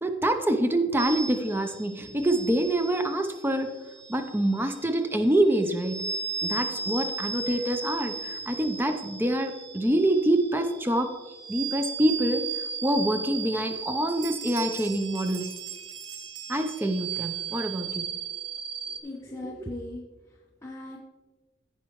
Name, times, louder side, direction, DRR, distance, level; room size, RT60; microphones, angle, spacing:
voice 1, 0.0-3.8 4.1-6.1 6.4-11.1 11.5-12.4 12.8-15.5 16.5-18.1, right 1 dB, 10° right, 6 dB, 0.6 m, -26 dB
sound 1, 1.0-19.0, right 5 dB, 65° right, 1.0 m, -36 dB
sound 2, 13.0-13.1 13.6-13.8 14.1-17.2, right 9 dB, 85° right, 0.9 m, -41 dB
voice 2, 18.8-20.0 20.6-21.0, left 2 dB, 15° left, -4 dB, 1.0 m, -39 dB
15.5 x 5.5 x 3.1 m, 1.2 s
head